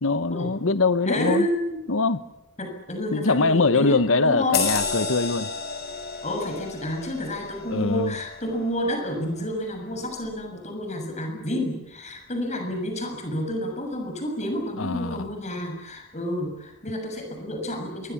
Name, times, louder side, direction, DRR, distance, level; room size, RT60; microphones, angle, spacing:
voice 1, 0.0-1.5 1.9-2.2 3.1-5.5 7.7-8.1 14.8-15.2, left 3 dB, 65° left, 1.1 m, -22 dB
voice 2, 1.0-1.8 2.6-4.6 6.2-18.1, left 1 dB, 35° left, 6.8 m, -29 dB
sound 1, 4.5-9.5 9.9-10.1, left 5 dB, 50° left, 5.9 m, -32 dB
26.5 x 23.0 x 7.3 m
head